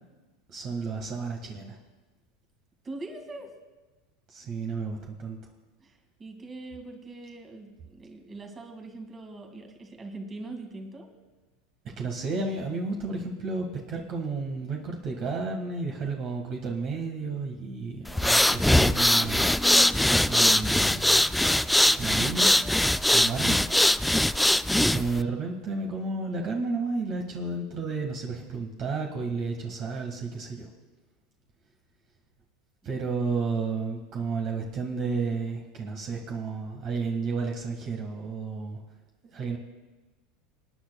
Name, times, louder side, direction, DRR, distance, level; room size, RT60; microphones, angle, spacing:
voice 1, 0.5-1.8 4.3-5.4 12.0-19.5 20.2-21.2 21.9-22.5 23.1-23.6 24.8-30.7 32.8-38.8 39.3-39.6, right 4 dB, 45° right, 1 dB, 1.8 m, -32 dB
voice 2, 2.8-3.5 5.8-11.1, right 2 dB, 25° right, 3 dB, 2.3 m, -42 dB
sound 1, 18.1-25.2, left 1 dB, 5° left, 0.3 m, -22 dB
26.5 x 9.9 x 2.4 m, 1.2 s
hypercardioid pair, 85°, 0 cm